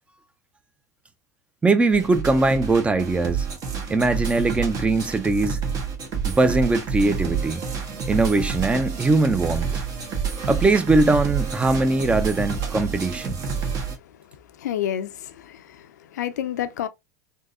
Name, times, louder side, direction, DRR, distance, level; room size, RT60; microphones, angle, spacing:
voice 1, 1.6-3.5 3.9-5.6 6.2-7.6 8.1-9.8 10.5-13.4, right 3 dB, 15° right, 0.6 m, -21 dB
sound 1, 1.9-14.0, right 6 dB, 45° right, 1.3 m, -28 dB
voice 2, 14.6-16.9, left 11 dB, 80° left, 0.5 m, -29 dB
3.7 x 2.8 x 2.5 m
hypercardioid pair, 95°, 9 cm